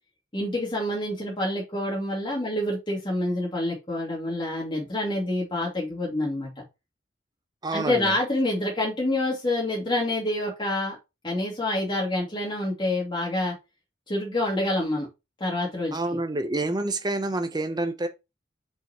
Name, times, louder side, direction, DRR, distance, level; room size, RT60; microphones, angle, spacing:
voice 1, 0.3-6.5 7.7-11.0 11.2-13.5 14.1-15.1 15.4-16.0, left 1 dB, 25° left, 2.5 m, -27 dB
voice 2, 7.6-8.2 15.9-18.1, right 2 dB, 25° right, 0.8 m, -28 dB
6.2 x 5.6 x 3.0 m
head